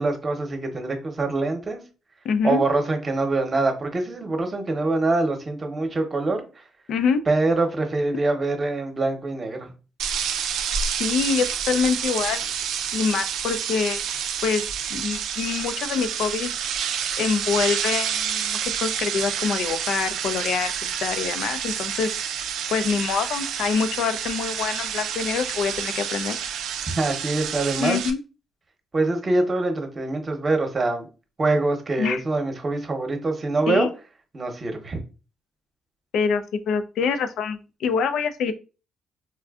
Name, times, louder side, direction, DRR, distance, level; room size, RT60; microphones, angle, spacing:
voice 1, 0.0-1.8 2.4-6.5 7.3-9.7 27.0-28.0 28.9-31.1 31.4-33.9 34.3-35.0, right 2 dB, 35° right, 0.8 m, -24 dB
voice 2, 2.2-2.6 6.9-7.2 11.0-12.5 12.9-14.0 14.4-14.6 14.9-16.5 17.2-22.1 22.7-26.4 27.8-28.2 32.0-32.2 33.7-33.9 36.1-38.5, left 6 dB, 75° left, 0.4 m, -25 dB
sound 1, 10.0-28.1, right 8 dB, 85° right, 0.4 m, -28 dB
4.4 x 2.4 x 2.3 m
cardioid pair, 90°, 0 cm